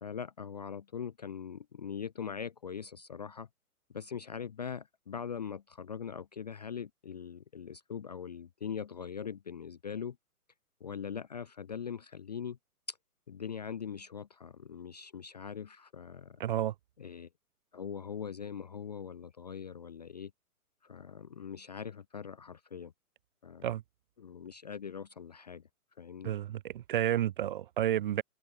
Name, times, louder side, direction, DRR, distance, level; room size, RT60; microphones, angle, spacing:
voice 1, 0.0-3.5 3.9-10.2 10.8-12.6 12.9-13.0 13.3-16.4 17.0-17.3 17.7-20.3 20.8-22.9 23.4-23.7 24.2-25.6 26.0-26.3, left 7 dB, 30° left, 0.4 m, -41 dB
voice 2, 16.4-16.7 23.6-23.8 26.2-28.2, right 11 dB, 35° right, 0.7 m, -31 dB
figure-of-eight pair, 130°, 45 cm